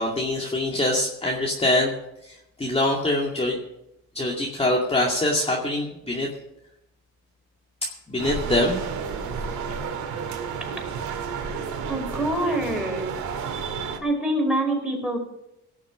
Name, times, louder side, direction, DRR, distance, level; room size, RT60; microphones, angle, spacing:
voice 1, 0.0-2.0 2.2-3.6 4.1-6.3 7.8-8.8, left 1 dB, 20° left, -2 dB, 2.3 m, -24 dB
sound 1, 8.2-14.0, right 6 dB, 75° right, 2.2 m, -31 dB
voice 2, 11.3-13.1 14.0-15.2, right 1 dB, 5° right, 0 dB, 5.6 m, -26 dB
18.0 x 7.3 x 6.2 m, 0.85 s
cardioid pair, 90°, 30 cm